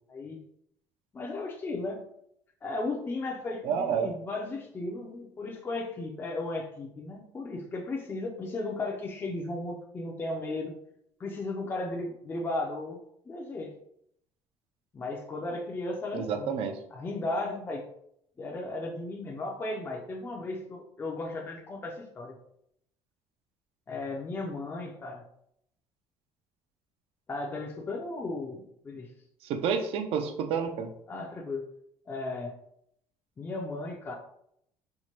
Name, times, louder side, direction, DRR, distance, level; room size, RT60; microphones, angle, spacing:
voice 1, 1.1-2.0 2.6-10.7 11.2-13.0 13.3-13.7 14.9-16.6 16.9-17.9 18.4-22.4 23.9-25.2 27.3-29.1 31.1-31.6 32.1-32.5 33.4-34.1, left 2 dB, 20° left, 0 dB, 0.5 m, -35 dB
voice 2, 3.6-4.1 16.1-16.8 29.4-30.9, right 6 dB, 65° right, 7 dB, 0.5 m, -29 dB
4.5 x 2.1 x 2.9 m, 0.72 s
cardioid pair, 130°, 11 cm